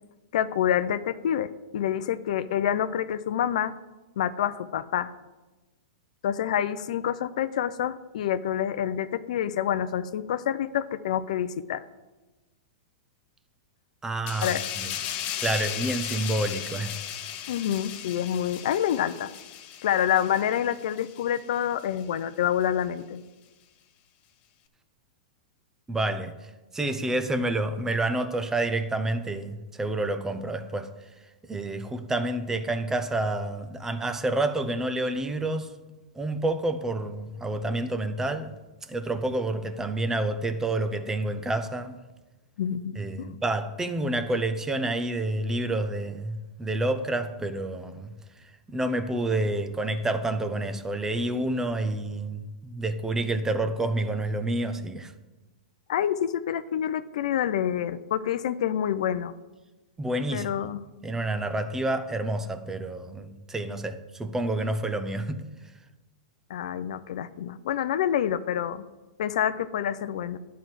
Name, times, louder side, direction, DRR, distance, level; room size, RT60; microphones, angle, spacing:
voice 1, 0.3-3.7 4.2-5.1 6.2-11.8 14.4-14.7 17.5-19.3 19.8-23.2 42.6-43.3 55.9-59.3 60.3-60.8 66.5-68.8 69.2-70.4, left 10 dB, 65° left, 0.5 m, -27 dB
voice 2, 14.0-14.9 15.4-17.0 25.9-30.9 31.5-35.7 36.2-38.5 38.9-42.0 43.0-55.1 60.0-60.5 61.0-65.4, right 2 dB, 10° right, 0.8 m, -29 dB
sound 1, 14.3-21.4 21.8-22.0, left 11 dB, 40° left, 0.9 m, -36 dB
11.0 x 4.6 x 7.7 m
hypercardioid pair, 115°, 4 cm